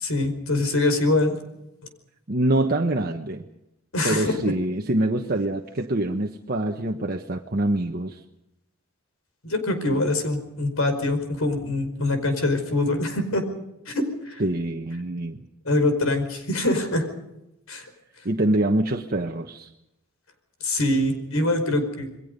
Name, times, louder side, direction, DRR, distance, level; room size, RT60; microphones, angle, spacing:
voice 1, 0.0-1.4 3.9-4.4 9.4-13.4 13.9-14.4 15.6-17.0 17.7-17.8 20.6-22.1, left 2 dB, 75° left, 7 dB, 5.0 m, -24 dB
voice 2, 2.3-3.4 4.0-8.2 14.4-15.4 18.2-19.7, right 1 dB, 45° right, 3 dB, 1.3 m, -25 dB
28.5 x 22.0 x 5.4 m, 0.87 s
head